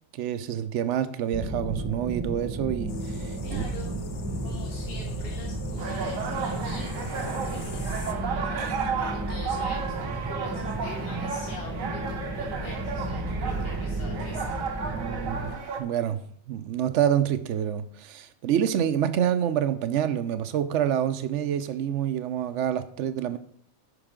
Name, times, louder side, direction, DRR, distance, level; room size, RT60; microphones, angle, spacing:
voice 1, 0.1-3.6 8.6-8.8 14.9-15.5 15.8-16.2 16.5-23.4, right 9 dB, 70° right, 0.9 m, -27 dB
sound 1, 1.3-15.5, right 2 dB, 10° right, 0.8 m, -33 dB
sound 2, 2.9-8.1, left 7 dB, 65° left, 1.0 m, -43 dB
voice 2, 3.4-3.9 4.4-8.7 8.9-14.6, left 1 dB, 50° left, 1.5 m, -43 dB
sound 3, 5.8-15.8, right 5 dB, 90° right, 1.3 m, -33 dB
9.8 x 5.6 x 3.7 m
omnidirectional pair, 1.4 m